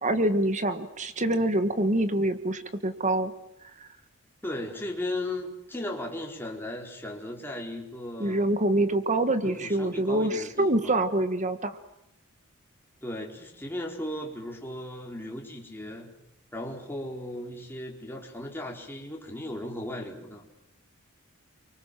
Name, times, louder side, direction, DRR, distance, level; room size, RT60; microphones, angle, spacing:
voice 1, 0.0-3.3 3.8-3.9 8.2-11.8, right 1 dB, 35° right, 9 dB, 1.6 m, -25 dB
voice 2, 4.4-8.5 9.4-10.9 13.0-16.1 16.5-20.5, left 1 dB, 10° left, 0 dB, 4.4 m, -36 dB
29.5 x 24.5 x 7.6 m, 0.81 s
head